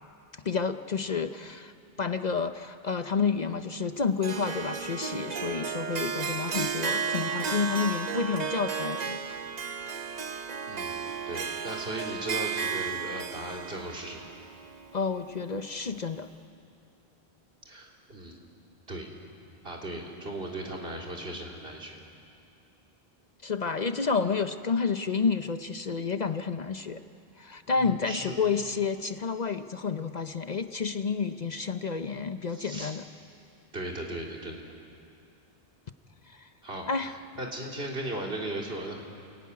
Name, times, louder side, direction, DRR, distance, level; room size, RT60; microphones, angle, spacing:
voice 1, 0.4-1.7 2.0-9.4 14.9-16.3 23.4-27.0 27.4-33.0 36.3-36.5 36.9-37.2, left 5 dB, 45° left, 9 dB, 0.8 m, -30 dB
Harp, 4.2-15.5, right 6 dB, 45° right, 0.9 m, -33 dB
voice 2, 10.7-14.3 17.7-18.4 18.9-19.1 19.6-22.0 27.8-28.4 32.5-33.0 33.7-34.7 36.6-39.0, right 1 dB, 70° right, -1 dB, 3.4 m, -37 dB
28.5 x 18.0 x 9.6 m, 2.6 s
omnidirectional pair, 1.0 m